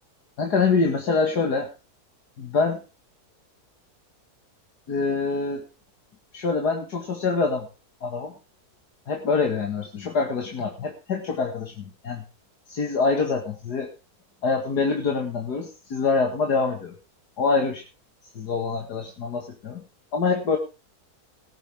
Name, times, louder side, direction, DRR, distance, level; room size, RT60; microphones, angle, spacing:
voice 1, 0.4-1.7 2.4-2.8 4.9-5.6 6.3-7.7 8.0-8.3 9.1-12.2 12.7-13.9 14.4-17.0 17.4-17.8 18.4-19.8 20.1-20.6, left 4 dB, 85° left, 1 dB, 2.5 m, -25 dB
19.0 x 9.2 x 3.6 m, 0.31 s
omnidirectional pair, 1.7 m